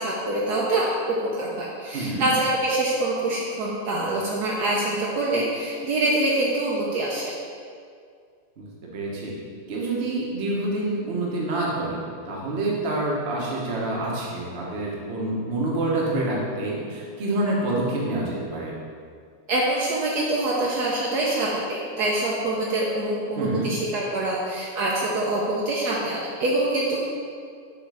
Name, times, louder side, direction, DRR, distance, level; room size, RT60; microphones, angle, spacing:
voice 1, 0.0-7.3 19.5-27.1, right 1 dB, 65° right, -4 dB, 1.2 m, -25 dB
voice 2, 1.9-2.3 8.6-8.7 8.9-9.3 9.7-12.0 12.3-18.7 23.4-23.7, right 2 dB, 40° right, -3 dB, 1.1 m, -27 dB
7.1 x 3.1 x 4.8 m, 2.2 s
omnidirectional pair, 2.0 m